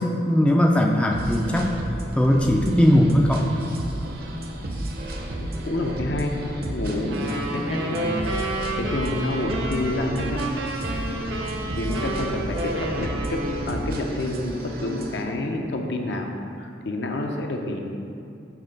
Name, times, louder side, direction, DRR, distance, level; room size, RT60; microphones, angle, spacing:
voice 1, 0.0-1.7 2.1-3.4, equal, 5° left, 0 dB, 0.3 m, -19 dB
sound 1, 1.1-15.2, right 1 dB, 50° right, 0.6 m, -32 dB
voice 2, 5.7-10.4 11.8-17.8, left 1 dB, 65° left, 3 dB, 0.6 m, -28 dB
sound 2, 7.1-13.9, right 1 dB, 80° right, 0.8 m, -30 dB
7.3 x 3.3 x 5.1 m, 2.6 s
head